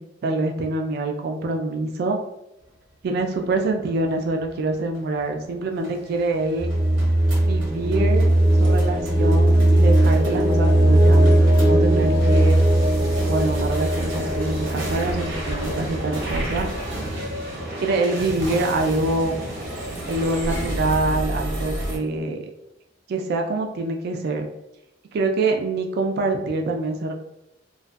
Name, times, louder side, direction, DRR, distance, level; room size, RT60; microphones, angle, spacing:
voice 1, 0.2-2.2 3.0-6.7 7.5-8.3 8.6-12.6 13.3-16.7 17.8-19.3 20.1-22.5 23.1-24.5 25.1-27.1, right 2 dB, 55° right, 3 dB, 0.3 m, -25 dB
sound 1, 3.4-22.0, right 1 dB, 85° right, 0.7 m, -32 dB
sound 2, 6.6-16.4, right 1 dB, 10° right, 0.5 m, -18 dB
2.5 x 2.2 x 2.2 m, 0.86 s
head